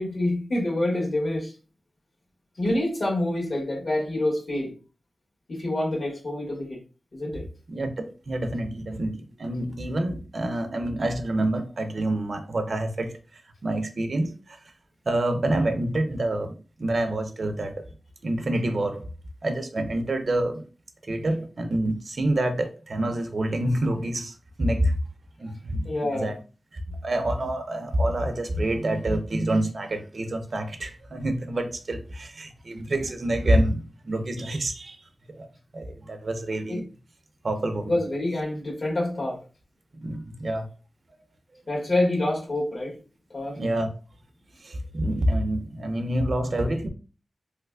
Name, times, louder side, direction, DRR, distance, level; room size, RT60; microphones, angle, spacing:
voice 1, 0.0-1.5 2.6-4.7 5.5-6.8 7.1-7.5 25.8-26.3 36.7-36.8 37.9-39.4 41.7-43.0 43.3-43.6, left 1 dB, 50° left, 1.5 m, -27 dB
voice 2, 8.3-13.2 13.6-14.6 15.1-17.7 18.2-19.1 19.4-20.6 21.0-25.0 25.4-26.3 26.9-35.0 35.3-35.5 35.7-36.8 37.4-38.0 40.0-40.7 43.6-43.9 44.6-46.9, right 1 dB, 50° right, 0.5 m, -27 dB
3.1 x 3.1 x 2.3 m
wide cardioid pair, 100°, 0 cm